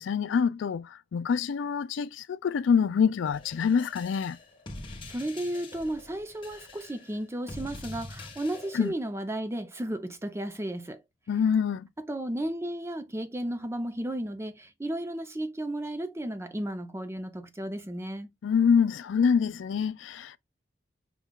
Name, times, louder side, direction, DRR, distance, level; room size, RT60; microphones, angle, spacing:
voice 1, 0.0-4.4 8.7-8.9 11.3-11.9 18.4-20.4, left 6 dB, 80° left, 0.4 m, -25 dB
sound 1, 3.2-8.9, left 2 dB, 30° left, 1.1 m, -44 dB
voice 2, 5.1-11.0 12.0-18.3, right 1 dB, 15° right, 0.5 m, -34 dB
5.6 x 2.4 x 3.6 m
head